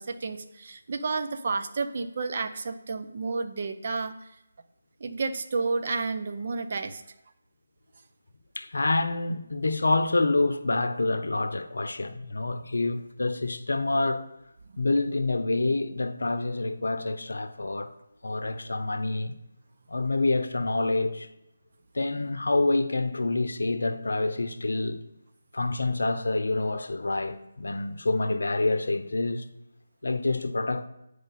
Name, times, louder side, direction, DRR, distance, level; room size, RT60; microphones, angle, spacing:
voice 1, 0.0-4.4 5.0-7.0, right 4 dB, 50° right, 0.6 m, -31 dB
voice 2, 8.6-14.3 14.8-17.9 18.2-19.4 19.9-21.3 21.9-25.0 25.5-29.4 30.0-30.9, left 2 dB, 75° left, 0.6 m, -27 dB
9.0 x 5.0 x 4.1 m
figure-of-eight pair, 155°, 0 cm